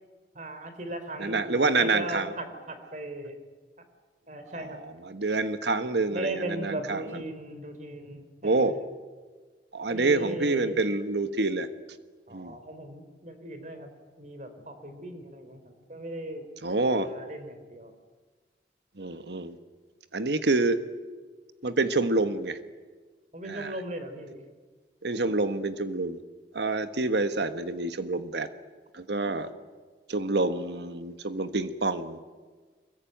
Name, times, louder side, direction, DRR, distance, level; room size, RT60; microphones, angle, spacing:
voice 1, 0.3-3.4 4.3-4.8 6.1-8.9 9.9-10.8 12.3-13.9 14.2-16.4 16.7-17.9 23.3-24.4 29.2-29.5, right 1 dB, 40° right, 8 dB, 3.5 m, -38 dB
voice 2, 1.2-2.3 4.5-7.0 8.4-8.7 9.7-11.7 12.3-12.6 16.6-17.1 19.0-19.6 20.1-20.8 21.6-22.6 23.5-23.7 25.0-26.2 26.5-28.5 28.9-29.5 30.1-32.2, right 3 dB, 75° right, 11 dB, 1.3 m, -27 dB
25.0 x 22.0 x 9.2 m, 1.4 s
head